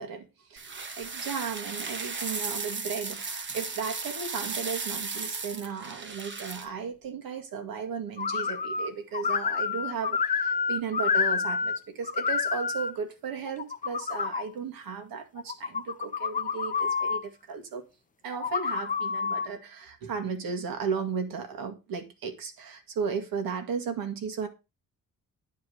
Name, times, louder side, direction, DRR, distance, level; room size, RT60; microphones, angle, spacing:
voice 1, 0.0-17.8 18.2-24.5, right 6 dB, 85° right, 2.1 m, -35 dB
sound 1, 0.6-6.7, right 4 dB, 35° right, 1.2 m, -35 dB
sound 2, 8.2-8.9 9.1-11.8 12.0-12.9 13.5-14.4 15.4-17.2 18.3-19.5, left 5 dB, 25° left, 0.5 m, -28 dB
10.0 x 4.8 x 6.4 m
wide cardioid pair, 155°, 34 cm